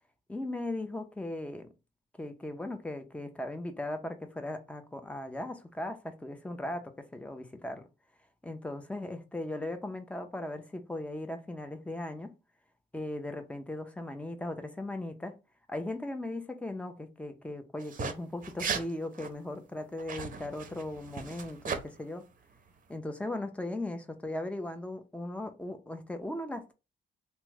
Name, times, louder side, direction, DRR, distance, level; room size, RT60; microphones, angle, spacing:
voice 1, 0.3-1.7 2.2-7.8 8.4-12.3 12.9-15.3 15.7-22.2 22.9-26.7, left 1 dB, 5° left, 0.5 m, -38 dB
sound 1, 17.8-18.1 18.4-18.9 19.1-19.3 20.0-21.8, right 5 dB, 45° right, 0.6 m, -36 dB
2.9 x 2.1 x 3.5 m
cardioid pair, 90°, 20 cm